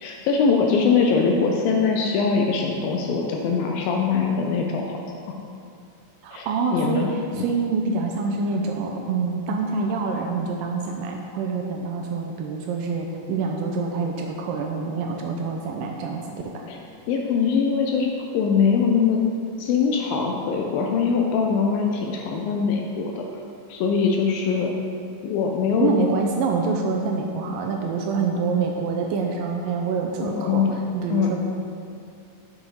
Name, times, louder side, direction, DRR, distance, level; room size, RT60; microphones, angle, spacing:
voice 1, 0.0-5.0 6.3-7.1 7.4-7.5 16.7-16.8 17.1-19.2 19.6-23.2 23.7-24.7 25.2-25.9 30.3-30.8 31.1-31.4, left 5 dB, 80° left, 1 dB, 2.2 m, -22 dB
voice 2, 6.2-16.7 25.8-31.4, right 4 dB, 85° right, 1 dB, 2.0 m, -26 dB
7.2 x 6.4 x 4.6 m, 2.5 s
omnidirectional pair, 4.5 m